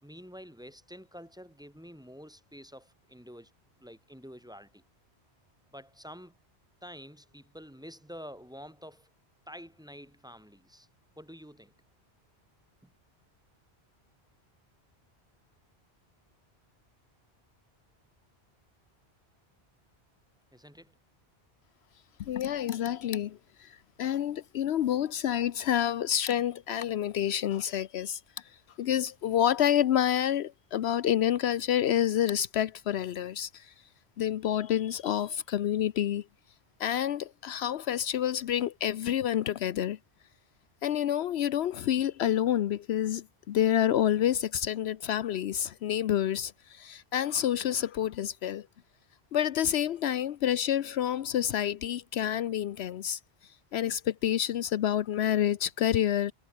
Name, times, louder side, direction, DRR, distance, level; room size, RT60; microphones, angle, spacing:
voice 1, 0.0-3.5 3.8-4.8 5.7-6.3 6.8-9.1 9.5-10.9 11.2-11.7 12.8-12.9 20.5-21.0, equal, 5° right, 5.7 m, -48 dB
voice 2, 22.2-28.2 28.8-33.7 34.2-36.2 36.8-40.0 40.8-48.7 49.3-53.2 53.7-56.3, left 10 dB, 75° left, 0.9 m, -28 dB
omnidirectional pair, 1.1 m